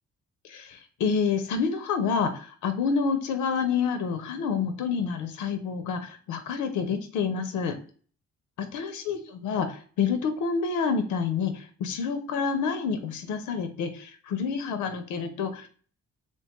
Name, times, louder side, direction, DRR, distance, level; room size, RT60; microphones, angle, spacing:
voice 1, 0.4-7.8 8.6-15.7, left 5 dB, 80° left, 8 dB, 0.5 m, -28 dB
3.0 x 2.2 x 2.9 m, 0.44 s
cardioid pair, 90°, 30 cm